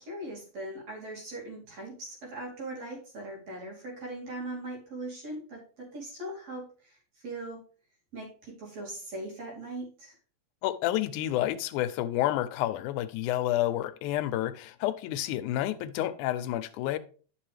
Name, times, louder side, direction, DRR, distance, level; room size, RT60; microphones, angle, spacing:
voice 1, 0.0-7.6 8.1-10.2, right 1 dB, 60° right, 3.8 m, -40 dB
voice 2, 10.6-17.0, left 13 dB, 90° left, 2.1 m, -29 dB
11.0 x 6.1 x 3.3 m
omnidirectional pair, 3.4 m